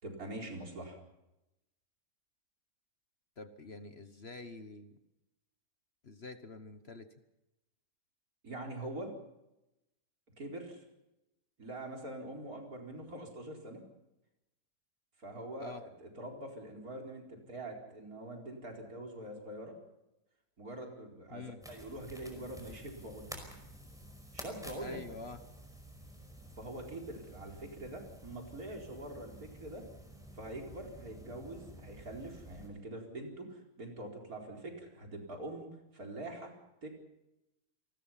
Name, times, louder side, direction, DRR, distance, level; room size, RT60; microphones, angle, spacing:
voice 1, 0.0-1.0 8.4-9.1 10.4-10.8 11.6-13.8 15.2-19.8 20.6-23.4 24.3-25.0 26.6-29.9 30.3-36.5 36.8-36.9, right 1 dB, 65° right, 1 dB, 4.9 m, -44 dB
voice 2, 3.4-5.0 6.0-7.1 15.6-15.8 21.3-21.6 24.8-25.4, left 3 dB, 45° left, 9 dB, 1.4 m, -47 dB
sound 1, 21.6-32.7, right 1 dB, ahead, 5.1 m, -51 dB
28.0 x 20.5 x 5.8 m, 0.92 s
omnidirectional pair, 1.7 m